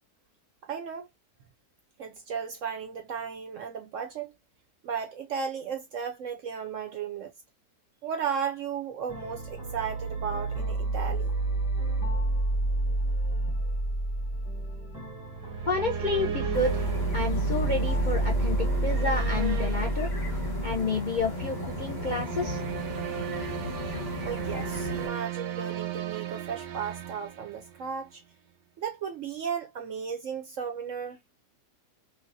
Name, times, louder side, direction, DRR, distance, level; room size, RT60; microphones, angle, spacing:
voice 1, 0.6-1.1 2.0-4.3 4.8-7.3 8.0-11.4 24.2-28.2 28.8-31.2, right 7 dB, 65° right, 0.8 m, -35 dB
sound 1, 9.1-20.8, right 2 dB, 5° right, 0.4 m, -29 dB
sound 2, 15.2-28.1, right 11 dB, 85° right, 1.3 m, -37 dB
voice 2, 15.7-16.9 17.1-20.1 20.6-22.6, left 3 dB, 60° left, 0.5 m, -30 dB
sound 3, 16.5-25.1, left 3 dB, 30° left, 1.0 m, -36 dB
3.3 x 2.3 x 2.5 m
omnidirectional pair, 1.8 m